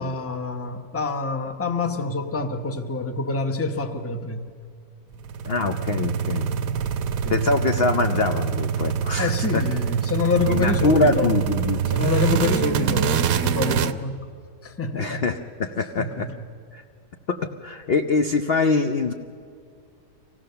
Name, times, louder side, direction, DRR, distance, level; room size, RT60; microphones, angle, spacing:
voice 1, 0.0-4.5 7.2-7.4 9.2-11.4 11.9-14.3 14.6-15.2 16.0-16.4, left 3 dB, 10° left, 7 dB, 0.7 m, -26 dB
sound 1, 5.1-13.9, right 8 dB, 65° right, 1.0 m, -25 dB
voice 2, 5.5-6.5 7.3-9.6 10.5-11.8 14.9-16.3 16.7-16.8 17.3-19.1, left 3 dB, 55° left, 6 dB, 0.6 m, -24 dB
25.0 x 17.0 x 6.8 m, 2.4 s
omnidirectional pair, 1.9 m